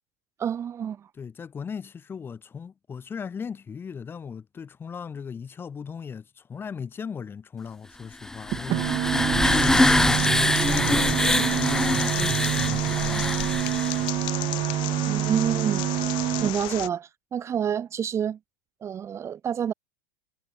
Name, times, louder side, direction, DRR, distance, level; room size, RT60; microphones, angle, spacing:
voice 1, 0.4-1.1 15.1-15.8 16.4-18.4 18.8-19.7, right 8 dB, 25° right, 5.2 m, -28 dB
voice 2, 1.1-13.8, left 6 dB, 20° left, 6.3 m, -37 dB
Female Ghost Crying, 8.2-14.0, left 1 dB, 5° left, 2.3 m, -24 dB
sound 1, 8.5-16.5, right 16 dB, 45° right, 7.2 m, -27 dB
sound 2, 9.4-16.9, left 22 dB, 50° left, 6.8 m, -34 dB
supercardioid pair, 120°, 10 cm